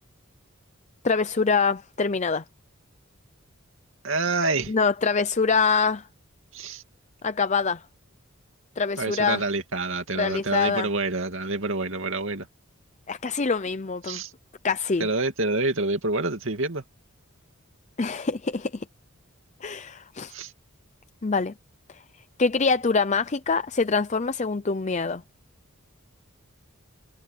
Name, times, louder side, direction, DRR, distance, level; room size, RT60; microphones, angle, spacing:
voice 1, 1.0-2.4 4.7-6.0 7.2-7.8 8.8-9.4 10.2-10.9 13.1-14.2 14.6-15.1 18.0-18.8 19.6-20.3 21.2-21.5 22.4-25.2, left 4 dB, 35° left, 0.5 m, -24 dB
voice 2, 4.0-4.7 6.5-6.8 9.0-12.5 14.0-14.3 15.0-16.8 20.3-20.5, right 3 dB, 65° right, 2.6 m, -27 dB
head